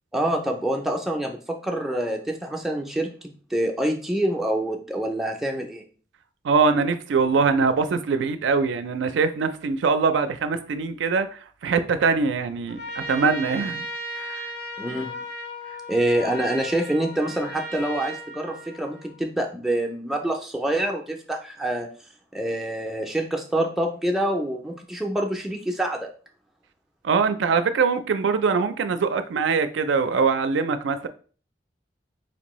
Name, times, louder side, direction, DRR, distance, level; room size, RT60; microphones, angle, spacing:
voice 1, 0.1-5.8 14.8-15.1 15.9-21.9 22.3-26.1, right 1 dB, ahead, 0.4 m, -26 dB
voice 2, 6.4-13.9 14.1-14.5 27.0-31.1, right 5 dB, 80° right, 0.4 m, -23 dB
Trumpet, 12.7-19.2, right 1 dB, 65° left, 0.6 m, -36 dB
4.3 x 2.6 x 3.0 m
head